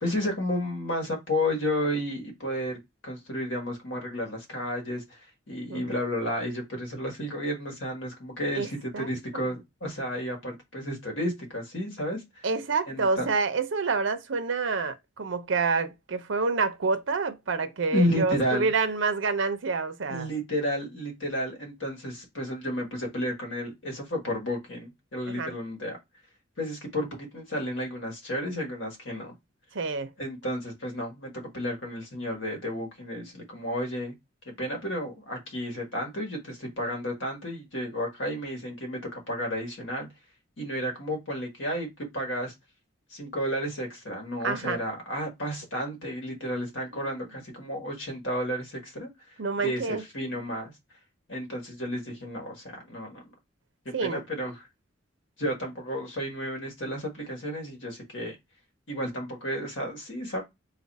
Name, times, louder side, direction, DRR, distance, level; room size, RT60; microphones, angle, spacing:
voice 1, 0.0-5.2 5.5-12.2 12.9-13.3 17.9-18.7 20.1-26.0 26.6-29.3 30.2-34.1 34.4-40.1 40.6-42.5 43.1-49.1 49.6-50.7 51.3-53.2 53.8-54.5 55.4-58.3 58.9-60.4, equal, 70° left, 1.6 m, -32 dB
voice 2, 12.4-20.3 25.3-25.5 29.7-30.1 44.4-44.8 46.9-47.1 49.4-50.0 53.9-54.2, right 4 dB, 75° right, 0.6 m, -28 dB
3.9 x 2.5 x 4.0 m
head